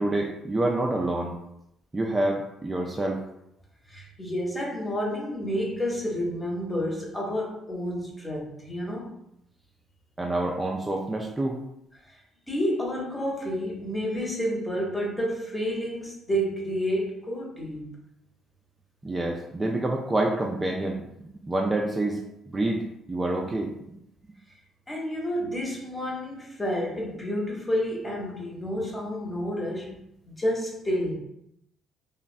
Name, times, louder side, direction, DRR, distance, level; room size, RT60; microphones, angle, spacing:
voice 1, 0.0-1.3 1.9-3.2 10.2-11.6 19.0-22.2 22.5-24.0, right 2 dB, 25° right, 0 dB, 0.3 m, -27 dB
voice 2, 3.9-9.1 12.1-12.2 12.5-17.9 24.9-30.0 30.3-31.2, equal, 20° left, -2 dB, 0.9 m, -30 dB
3.0 x 2.1 x 2.5 m, 0.79 s
hypercardioid pair, 50°, 0 cm